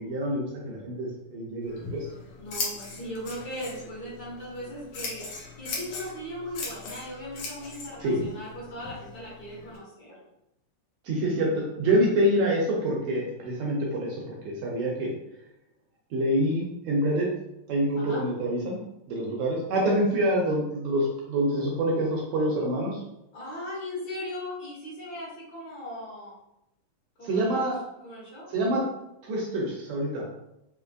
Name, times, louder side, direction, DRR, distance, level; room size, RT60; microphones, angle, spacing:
voice 1, 0.0-2.1 8.0-8.2 11.0-15.1 16.1-17.3 17.7-18.8 19.1-23.0 27.2-27.8 28.5-28.8 29.3-30.2, right 1 dB, 80° right, -3 dB, 1.7 m, -26 dB
Scissors, 1.6-9.8, left 4 dB, 90° left, 1.3 m, -39 dB
voice 2, 2.4-5.2 5.6-10.2 18.0-18.2 23.3-26.3 27.2-27.7 28.0-28.5, equal, 50° left, -7 dB, 1.2 m, -38 dB
5.1 x 2.9 x 2.4 m, 0.86 s
omnidirectional pair, 3.8 m